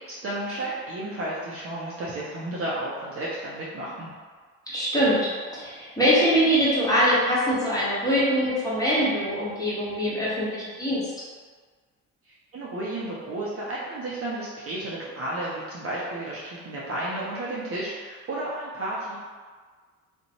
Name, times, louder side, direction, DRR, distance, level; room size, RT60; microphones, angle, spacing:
voice 1, 0.1-4.1 12.3-19.2, right 1 dB, 35° right, -7 dB, 0.6 m, -32 dB
voice 2, 4.7-11.0, equal, 10° left, -9 dB, 1.1 m, -23 dB
2.5 x 2.2 x 2.8 m, 1.5 s
hypercardioid pair, 55°, 43 cm